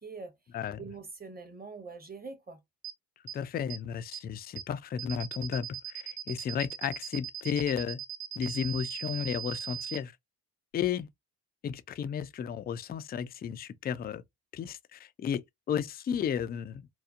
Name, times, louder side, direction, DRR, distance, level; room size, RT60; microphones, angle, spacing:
voice 1, 0.0-0.4 0.8-2.6, right 4 dB, 20° right, 0.9 m, -43 dB
sound 1, 2.8-2.9 3.3-3.4 3.7-3.8 4.1-4.2 4.6-4.7 5.0-10.0, right 10 dB, 45° right, 1.2 m, -38 dB
voice 2, 3.3-8.0 8.4-10.1 10.7-11.1 11.6-14.2 14.5-16.9, left 8 dB, 25° left, 0.3 m, -33 dB
2.8 x 2.0 x 2.3 m
hypercardioid pair, 45°, 45 cm